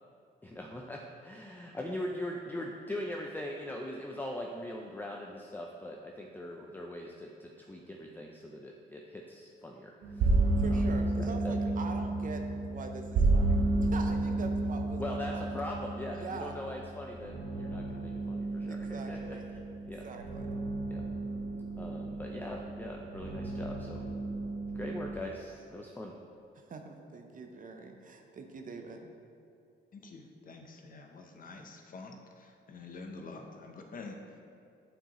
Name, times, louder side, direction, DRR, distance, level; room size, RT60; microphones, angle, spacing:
voice 1, 0.4-10.3 10.7-10.8 11.4-11.6 15.0-19.4 19.9-20.1 20.9-21.0 21.8-24.1 24.7-26.2, left 1 dB, 10° left, 0 dB, 0.4 m, -41 dB
sound 1, 10.0-25.1, right 2 dB, 75° right, 0.9 m, -32 dB
voice 2, 10.6-15.6 16.1-16.6 18.7-19.5 20.0-20.5 26.5-29.1, right 4 dB, 40° right, 4 dB, 0.7 m, -43 dB
voice 3, 29.9-34.4, left 3 dB, 45° left, 3 dB, 0.7 m, -47 dB
8.7 x 4.6 x 3.0 m, 2.5 s
cardioid pair, 90°, 20 cm